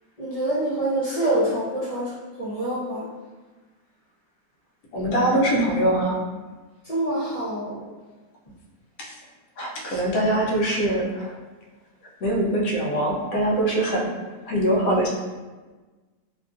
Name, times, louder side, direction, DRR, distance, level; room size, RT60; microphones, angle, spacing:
voice 1, 0.2-3.1 6.8-7.8, right 1 dB, 40° left, -10 dB, 0.5 m, -26 dB
voice 2, 4.9-6.2 9.0-9.1 9.6-11.3 12.2-14.1 14.5-15.1, right 1 dB, 70° left, -2 dB, 1.0 m, -23 dB
2.8 x 2.4 x 2.4 m, 1.3 s
omnidirectional pair, 1.7 m